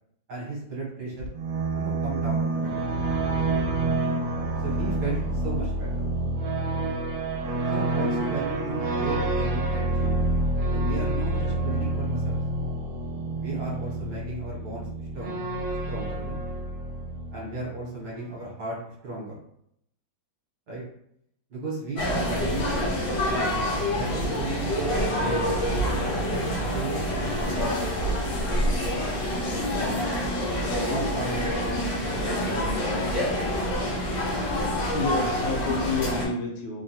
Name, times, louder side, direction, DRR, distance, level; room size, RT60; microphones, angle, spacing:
voice 1, 0.3-1.3 1.7-3.0 4.6-6.0 7.7-10.2 10.7-12.4 13.3-14.9 15.1-15.4 15.9-16.4 17.3-18.8 19.0-19.4 20.7-20.8 21.5-22.8 23.5-25.5 26.2-27.7 29.7-30.0 30.8-31.8 32.4-33.0, right 2 dB, 60° right, -5 dB, 1.4 m, -35 dB
sound 1, 1.2-17.8, right 2 dB, 80° right, 1.3 m, -28 dB
sound 2, 22.0-36.2, equal, 65° left, 0.9 m, -27 dB
voice 2, 34.9-36.8, left 4 dB, 80° left, 1 dB, 1.4 m, -29 dB
3.4 x 2.2 x 2.7 m, 0.73 s
omnidirectional pair, 2.2 m